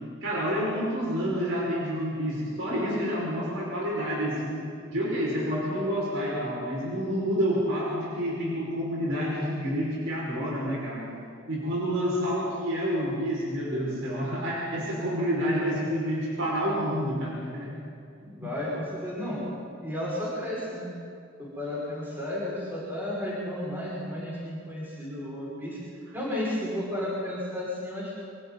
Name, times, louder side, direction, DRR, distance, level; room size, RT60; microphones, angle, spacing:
voice 1, 0.2-4.6 4.9-11.0 11.5-17.8 18.2-18.3, equal, 80° right, -5 dB, 5.8 m, -28 dB
voice 2, 18.2-19.5 19.8-20.9 21.4-25.8 26.1-28.1, left 1 dB, 10° right, -8 dB, 5.9 m, -33 dB
26.5 x 24.5 x 4.2 m, 2.4 s
head